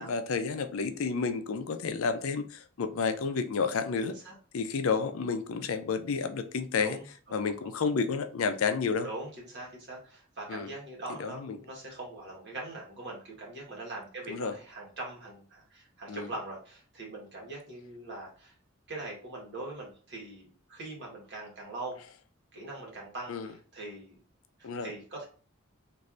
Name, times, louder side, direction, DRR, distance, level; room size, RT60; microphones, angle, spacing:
voice 1, 0.0-4.2 4.5-7.0 7.3-9.1 10.5-10.7 11.2-11.6 14.3-14.6 16.1-16.3 23.3-23.5 24.6-24.9, left 5 dB, 90° left, 0.4 m, -31 dB
voice 2, 4.0-4.3 6.8-7.9 9.0-18.5 18.9-22.0 22.5-24.1 24.6-25.2, right 2 dB, 55° right, 1.4 m, -42 dB
3.2 x 2.6 x 2.5 m
head